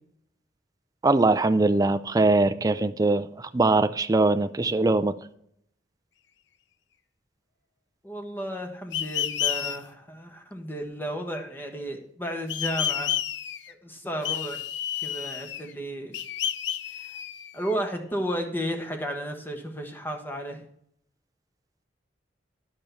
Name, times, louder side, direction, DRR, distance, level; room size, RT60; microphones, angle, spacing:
voice 1, 1.0-5.1, right 2 dB, 20° right, 9 dB, 0.5 m, -22 dB
voice 2, 8.0-13.1 13.7-14.6 15.0-16.2 17.5-20.6, equal, 10° left, 4 dB, 1.4 m, -33 dB
sound 1, 8.9-9.8 12.5-13.7 14.2-15.7 16.1-17.7, left 10 dB, 70° left, 0.6 m, -30 dB
10.5 x 6.9 x 4.5 m, 0.70 s
head